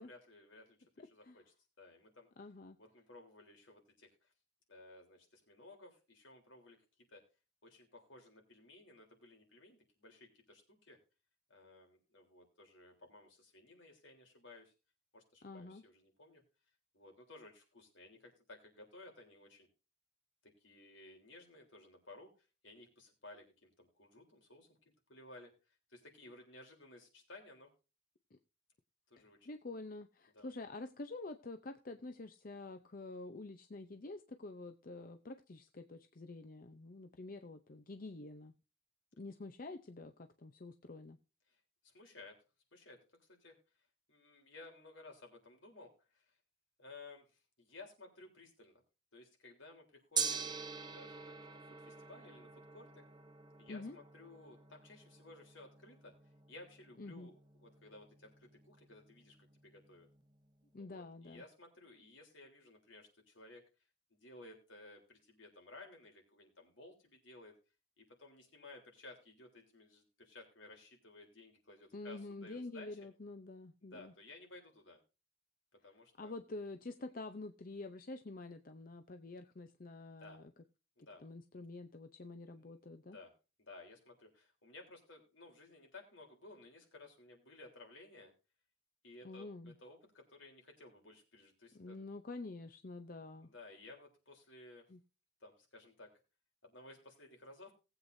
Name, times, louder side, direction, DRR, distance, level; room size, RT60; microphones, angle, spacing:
voice 1, 0.0-1.4 1.8-2.3 2.8-4.3 4.7-6.8 7.1-7.2 7.6-11.0 11.5-14.7 15.1-16.4 16.9-19.7 20.4-22.3 22.6-27.7 29.1-29.5 30.3-30.5 41.5-41.6 41.8-42.4 42.7-43.6 44.1-46.3 46.8-48.8 49.1-50.6 50.9-51.4 51.8-53.0 53.6-56.1 56.5-60.1 60.8-63.6 64.1-67.5 68.0-73.0 73.8-75.0 75.7-76.3 80.2-80.4 81.0-81.2 82.6-83.3 83.6-88.3 89.0-92.0 93.4-94.8 95.4-96.1 96.6-97.7, left 2 dB, 80° left, 2 dB, 3.5 m, -57 dB
voice 2, 1.0-1.4 2.4-2.8 15.4-15.8 28.3-28.4 29.2-38.5 39.2-41.2 53.7-54.0 57.0-57.3 60.7-61.4 71.9-74.1 76.2-80.5 81.2-83.2 89.2-89.7 91.7-93.5 94.9-95.0, left 2 dB, 45° left, 7 dB, 0.7 m, -48 dB
Gong, 50.2-60.4, right 6 dB, 20° right, 0.9 m, -45 dB
19.0 x 8.1 x 2.6 m, 0.30 s
head